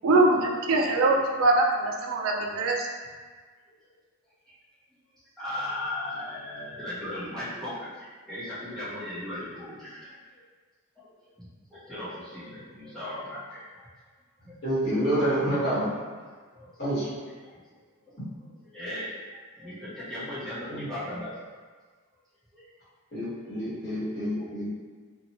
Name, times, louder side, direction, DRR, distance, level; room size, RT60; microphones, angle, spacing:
voice 1, 0.0-2.9, right 2 dB, 70° right, 0 dB, 0.4 m, -23 dB
voice 2, 5.4-10.1 11.0-13.9 14.4-14.5 15.5-16.0 16.5-16.9 17.2-18.5 18.7-21.5 22.5-22.7 23.4-23.7 24.4-24.5, left 1 dB, ahead, -13 dB, 0.8 m, -38 dB
voice 3, 14.6-15.9 16.8-17.1 20.7-20.8 23.1-24.7, right 1 dB, 45° left, -12 dB, 1.4 m, -27 dB
2.7 x 2.3 x 2.9 m, 1.5 s
head